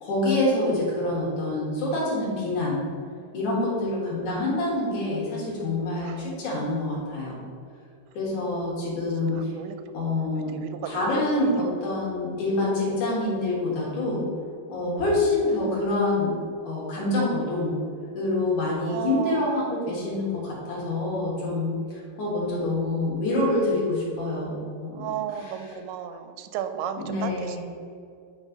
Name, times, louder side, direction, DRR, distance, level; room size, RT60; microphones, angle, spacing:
voice 1, 0.0-2.8 3.3-7.4 8.1-9.5 9.9-10.5 10.8-14.2 14.7-16.3 16.6-17.7 18.1-25.1 25.4-25.5 27.0-27.6, left 2 dB, 60° left, -6 dB, 2.9 m, -26 dB
voice 2, 3.7-4.3 6.0-6.3 9.3-9.8 10.2-11.1 11.6-11.7 12.8-13.0 18.8-19.8 24.9-27.6, right 9 dB, 90° right, 8 dB, 2.4 m, -34 dB
9.4 x 3.2 x 5.1 m, 2.4 s
omnidirectional pair, 4.1 m